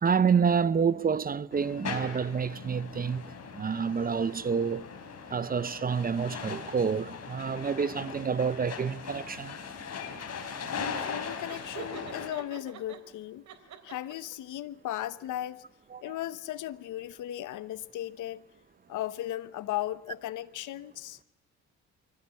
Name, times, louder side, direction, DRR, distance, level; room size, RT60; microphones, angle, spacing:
voice 1, 0.0-4.9 5.3-9.6 15.9-16.2, right 6 dB, 30° right, 0.7 m, -28 dB
sound 1, 1.5-12.3, left 6 dB, 55° left, 4.2 m, -39 dB
voice 2, 11.0-13.4 13.8-15.6 16.0-18.5 18.9-21.2, left 13 dB, 80° left, 1.0 m, -36 dB
Laughter, 11.5-13.0 13.5-14.3, right 7 dB, 70° right, 3.6 m, -44 dB
25.0 x 16.5 x 8.3 m
cardioid pair, 90°, 30 cm